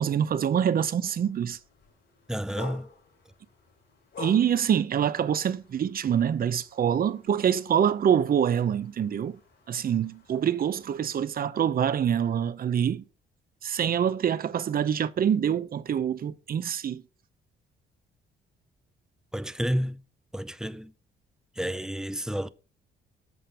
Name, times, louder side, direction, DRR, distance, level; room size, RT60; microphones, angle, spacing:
voice 1, 0.0-1.6 4.2-9.4 9.7-13.0 13.6-17.0, right 8 dB, 45° right, 0.7 m, -25 dB
sound 1, 1.0-11.2, left 4 dB, 70° left, 5.3 m, -48 dB
voice 2, 2.3-2.9 19.3-20.0 20.3-20.9 21.6-22.5, equal, 5° right, 0.5 m, -30 dB
7.9 x 5.1 x 5.6 m
cardioid pair, 90°, 20 cm